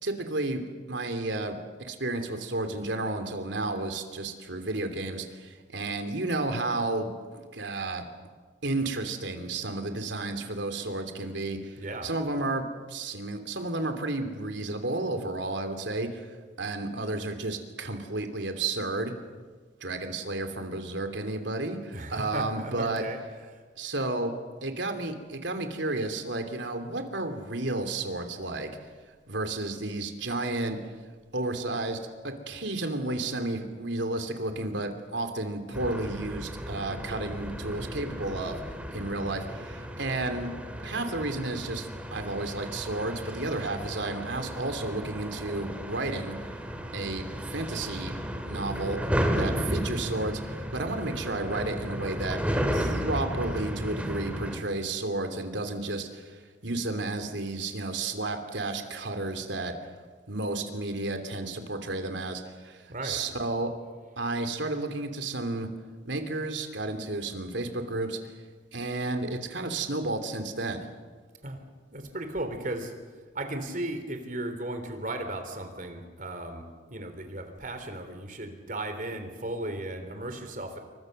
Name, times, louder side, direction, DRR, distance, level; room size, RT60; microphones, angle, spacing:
voice 1, 0.0-0.6 0.9-8.1 8.6-16.3 16.6-19.1 19.8-23.0 23.8-24.3 24.6-28.7 29.3-30.8 31.3-32.0 32.2-38.6 38.9-40.5 40.8-46.3 46.9-48.1 48.5-49.0 49.3-52.4 52.7-59.7 60.3-63.7 64.2-65.7 66.0-68.2 68.7-70.9, right 2 dB, 70° right, 6 dB, 3.1 m, -32 dB
voice 2, 11.7-12.1 21.9-23.2 62.9-63.2 71.4-71.6 71.9-72.9 73.3-76.6 76.9-80.8, right 1 dB, 45° right, 7 dB, 3.6 m, -35 dB
sound 1, 35.7-54.6, equal, 5° right, 2.5 m, -34 dB
29.0 x 24.0 x 6.7 m, 1.5 s
head